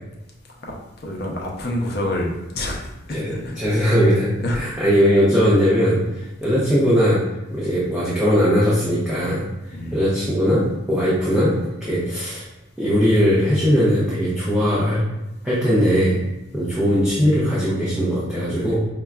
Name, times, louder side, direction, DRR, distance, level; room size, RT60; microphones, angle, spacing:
voice 1, 1.0-3.6 4.4-4.6 9.7-10.0 16.9-17.1 18.6-18.8, left 1 dB, 50° left, -1 dB, 0.6 m, -28 dB
voice 2, 3.1-7.2 7.5-9.4 9.9-10.6 10.9-11.5 11.8-12.4 12.8-15.0 15.4-16.2 16.5-18.9, equal, 5° right, -10 dB, 0.7 m, -19 dB
5.3 x 2.3 x 2.3 m, 0.96 s
head